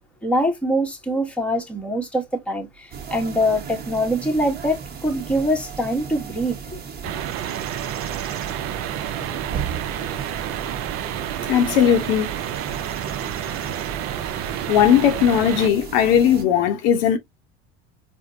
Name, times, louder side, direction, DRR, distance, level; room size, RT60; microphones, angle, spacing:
voice 1, 0.2-6.8 7.0-7.1, equal, 5° left, 0.9 m, -24 dB
sound 1, 2.9-16.4, right 7 dB, 30° right, 1.0 m, -35 dB
sound 2, 7.0-15.7, right 10 dB, 45° right, 0.5 m, -30 dB
voice 2, 11.5-12.3 14.7-17.2, left 9 dB, 65° left, 0.7 m, -18 dB
4.3 x 2.0 x 2.5 m
hypercardioid pair, 90°, 32 cm